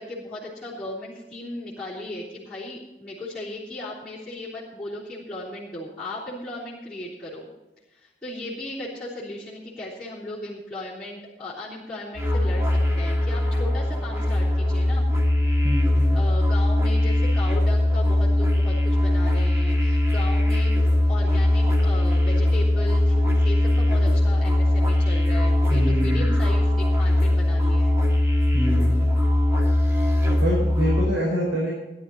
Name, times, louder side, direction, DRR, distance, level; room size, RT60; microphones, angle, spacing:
voice 1, 0.0-7.5 7.9-15.3 16.1-20.8 21.1-28.0, left 1 dB, 5° left, -11 dB, 3.4 m, -36 dB
sound 1, 12.1-31.1, left 1 dB, 15° right, 2.2 m, -20 dB
voice 2, 15.6-16.2 25.7-26.3 28.5-29.1 30.4-31.7, equal, 90° right, -3 dB, 4.7 m, -26 dB
17.0 x 11.0 x 4.3 m, 1.1 s
head